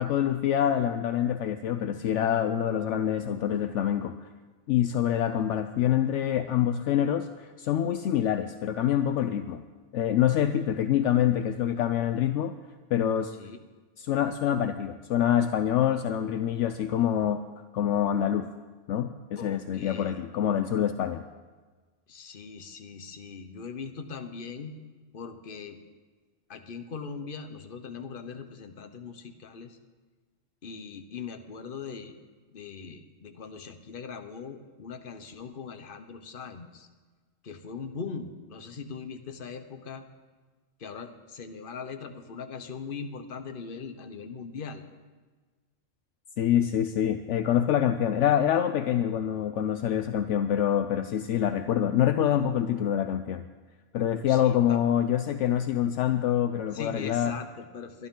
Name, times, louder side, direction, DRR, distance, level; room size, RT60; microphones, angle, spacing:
voice 1, 0.0-4.2 4.7-9.6 9.9-12.5 12.9-13.3 14.0-17.4 17.7-18.5 18.9-21.2 46.4-53.4 53.9-57.3, left 10 dB, 70° left, 9 dB, 0.9 m, -26 dB
voice 2, 19.4-20.3 22.1-24.8 25.1-25.8 26.5-29.8 30.6-32.2 32.5-36.9 37.4-40.0 40.8-44.9 54.2-54.8 56.7-58.1, left 5 dB, 45° left, 7 dB, 1.1 m, -40 dB
22.5 x 11.5 x 3.8 m, 1.4 s
omnidirectional pair, 1.3 m